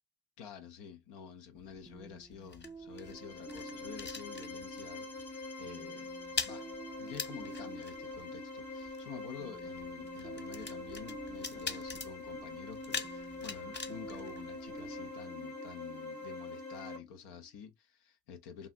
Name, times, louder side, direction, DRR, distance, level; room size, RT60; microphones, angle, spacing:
voice 1, 0.4-6.1 6.4-6.7 7.0-18.7, left 7 dB, 85° left, 0.6 m, -49 dB
sound 1, 1.6-4.9 5.2-5.5 5.7-15.1, left 5 dB, 30° left, 0.7 m, -43 dB
sound 2, 1.9-17.4, right 3 dB, 10° right, 0.3 m, -52 dB
sound 3, 2.9-17.0, left 2 dB, 50° left, 1.2 m, -44 dB
3.3 x 2.3 x 2.5 m
supercardioid pair, 45°, 39 cm